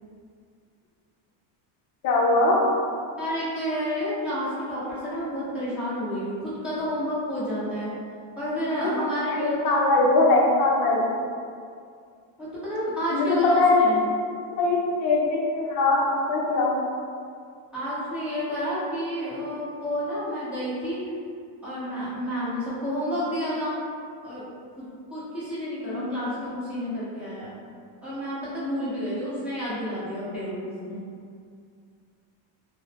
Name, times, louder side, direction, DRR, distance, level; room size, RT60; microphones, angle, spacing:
voice 1, 2.0-2.7 8.8-8.9 9.4-11.1 13.1-13.9 14.6-16.7 25.9-26.2, left 2 dB, 45° left, -3 dB, 0.5 m, -21 dB
voice 2, 3.2-7.9 8.4-9.8 12.4-14.0 17.7-21.0 21.6-23.8 24.2-24.4 24.8-24.9 25.1-27.5 28.0-31.0, equal, 5° right, -13 dB, 0.7 m, -30 dB
3.0 x 2.1 x 2.8 m, 2.3 s
cardioid pair, 165°, 48 cm